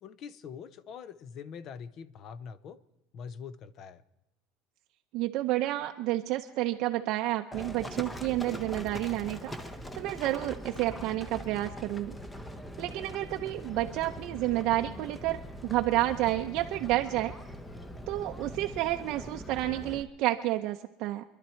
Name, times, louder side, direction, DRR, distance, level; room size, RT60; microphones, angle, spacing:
voice 1, 0.0-2.8 3.1-4.0, left 6 dB, 40° left, 16 dB, 0.7 m, -44 dB
voice 2, 5.1-9.5 9.9-12.2 12.8-17.3 18.1-21.2, right 16 dB, 55° right, 4 dB, 0.6 m, -30 dB
Livestock farm animals working animals, 7.5-20.0, equal, 10° left, 0.8 m, -42 dB
25.5 x 11.5 x 4.5 m, 0.85 s
cardioid pair, 155°, 0 cm